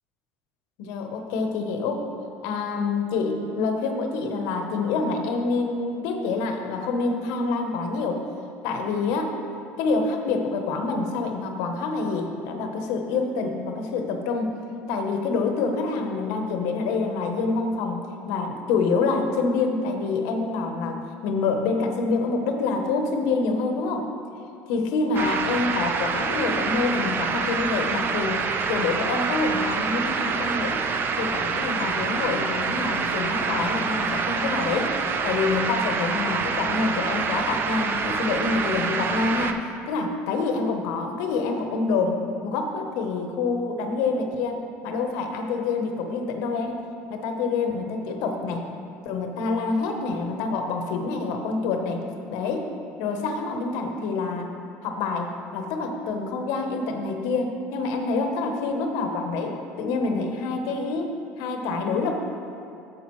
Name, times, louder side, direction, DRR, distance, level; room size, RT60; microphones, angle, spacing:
voice 1, 0.8-2.0 2.4-8.2 8.6-9.3 9.8-14.5 14.9-24.1 24.7-30.8 31.2-34.9 35.2-39.6 39.9-46.8 47.1-48.7 49.0-52.7 53.0-54.5 54.8-62.2, left 4 dB, 75° left, 4 dB, 0.9 m, -27 dB
sound 1, 25.1-39.5, right 5 dB, 35° right, 0.5 m, -26 dB
9.8 x 6.7 x 3.1 m, 2.6 s
cardioid pair, 125°, 6 cm